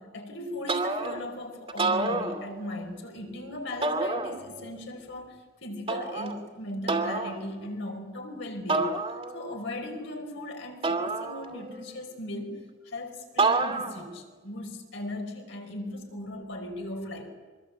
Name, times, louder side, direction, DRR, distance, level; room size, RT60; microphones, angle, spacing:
voice 1, 0.0-17.3, left 1 dB, 65° left, 4 dB, 5.0 m, -38 dB
sound 1, 0.7-1.3 1.7-2.8 3.8-4.7 5.9-6.4 6.9-7.4 8.7-9.5 10.8-11.8 13.4-14.1, right 3 dB, 30° right, 2.6 m, -28 dB
25.0 x 23.0 x 7.9 m, 1.4 s
head